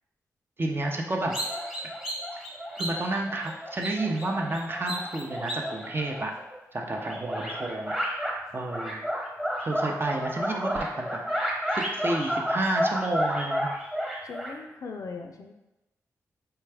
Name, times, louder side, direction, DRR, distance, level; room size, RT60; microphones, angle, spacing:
voice 1, 0.6-1.3 2.8-6.3 6.7-8.2 8.5-9.0 9.6-11.1 11.7-13.7, right 2 dB, 35° right, 1 dB, 0.6 m, -30 dB
sound 1, 1.3-6.5 6.9-8.4 8.7-14.5, equal, 5° right, 1.0 m, -31 dB
voice 2, 14.2-15.5, left 4 dB, 65° left, 4 dB, 0.4 m, -39 dB
4.4 x 2.3 x 3.3 m, 0.97 s
cardioid pair, 65°, 6 cm